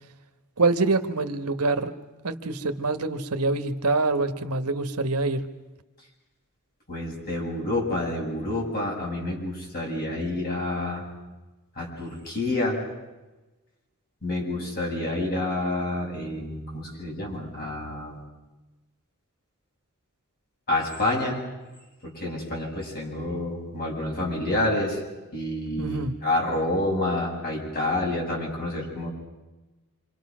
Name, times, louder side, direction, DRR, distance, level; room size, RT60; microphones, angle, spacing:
voice 1, 0.6-1.9 2.2-5.4 25.8-26.1, right 3 dB, 80° right, 8 dB, 1.5 m, -25 dB
voice 2, 6.9-11.1 11.8-12.8 14.2-18.2 20.7-21.4 22.0-25.0 25.3-29.1, left 1 dB, 45° left, -1 dB, 7.6 m, -28 dB
27.5 x 27.0 x 6.3 m, 1.1 s
head